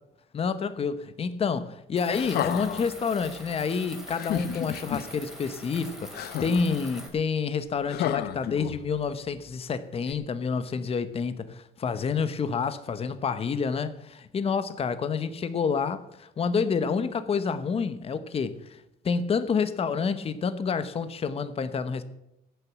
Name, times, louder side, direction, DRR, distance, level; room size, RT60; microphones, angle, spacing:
voice 1, 0.3-18.8 19.0-22.0, left 5 dB, 35° left, 1.0 m, -28 dB
sound 1, 1.9-7.1, equal, 5° right, 3.0 m, -43 dB
sound 2, 2.1-2.9 4.1-5.0 6.1-6.8 7.9-9.0 10.1-10.2, left 11 dB, 70° left, 0.8 m, -32 dB
14.5 x 6.9 x 7.4 m
cardioid pair, 110°, 17 cm